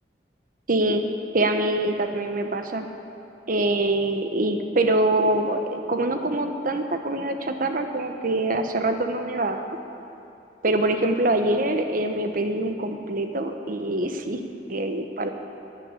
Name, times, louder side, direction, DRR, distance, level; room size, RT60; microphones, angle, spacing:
voice 1, 0.7-1.0 1.3-2.8 3.5-9.6 10.6-14.4 14.7-15.3, right 2 dB, 50° right, 6 dB, 1.0 m, -24 dB
11.5 x 10.0 x 8.3 m, 2.8 s
head